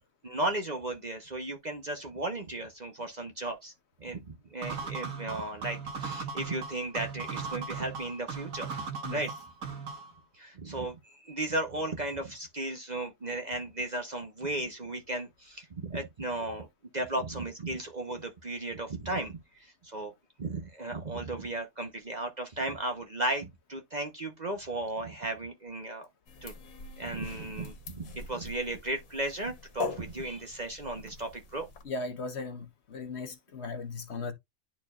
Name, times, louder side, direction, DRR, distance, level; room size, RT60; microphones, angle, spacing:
voice 1, 0.2-3.7 4.0-8.7 9.1-9.3 10.3-16.7 16.9-20.1 20.4-26.1 26.4-26.5 27.0-31.7, right 2 dB, 35° right, 0.9 m, -35 dB
sound 1, 4.6-10.2, right 5 dB, 80° right, 1.7 m, -38 dB
sound 2, 26.3-31.8, left 4 dB, 85° left, 1.5 m, -42 dB
voice 2, 31.8-34.3, left 3 dB, 55° left, 1.2 m, -37 dB
10.5 x 4.5 x 2.3 m
omnidirectional pair, 1.4 m